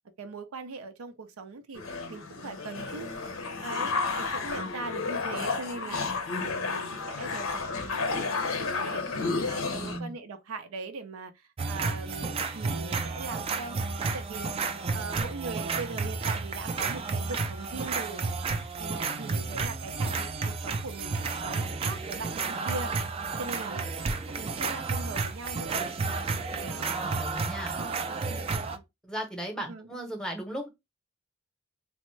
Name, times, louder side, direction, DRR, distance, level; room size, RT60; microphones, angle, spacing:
voice 1, 0.2-1.8 2.1-3.3 3.6-6.1 6.4-9.1 9.4-11.3 11.7-13.8 14.1-14.5 14.9-18.2 18.8-21.2 21.4-22.9 23.4-23.9 24.3-25.8 26.5-26.9 27.8-28.8 29.7-29.9, right 3 dB, 90° right, 0.5 m, -40 dB
sound 1, 1.8-10.0, left 4 dB, 85° left, 0.6 m, -32 dB
voice 2, 9.7-10.1 26.7-27.7 29.0-30.7, equal, 5° left, 0.7 m, -36 dB
sound 2, 11.6-28.8, right 4 dB, 25° right, 0.3 m, -31 dB
3.5 x 2.0 x 3.1 m
head